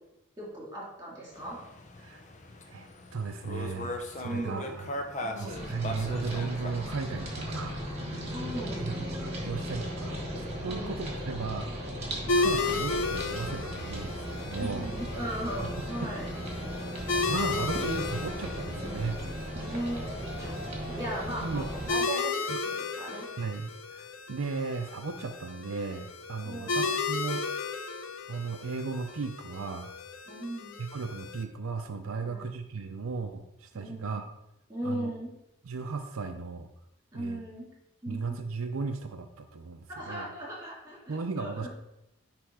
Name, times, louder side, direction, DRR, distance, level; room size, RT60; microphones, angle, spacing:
voice 1, 0.4-1.6 4.2-4.8 5.2-5.7 8.3-8.9 10.6-10.9 14.5-16.3 19.7-20.6 20.9-23.2 26.4-27.0 30.3-30.7 32.2-32.5 33.7-34.2 34.7-35.3 37.1-37.7 38.0-38.2 39.9-41.7, right 1 dB, 15° right, -6 dB, 3.1 m, -38 dB
sound 1, 1.3-6.9, left 1 dB, 35° left, 0.7 m, -39 dB
voice 2, 2.7-4.9 5.4-7.8 8.8-11.7 12.3-14.9 16.0-16.1 17.3-19.2 21.4-21.7 22.5-22.6 23.4-27.4 28.3-29.9 30.8-34.3 34.8-35.1 35.6-36.7 37.1-37.4 38.1-40.3 41.1-41.7, right 4 dB, 85° right, 6 dB, 0.6 m, -36 dB
sound 2, 5.5-21.9, equal, 30° right, 1.5 m, -36 dB
sound 3, 12.3-31.4, left 3 dB, 75° left, 0.7 m, -34 dB
10.0 x 3.4 x 4.8 m, 0.86 s
head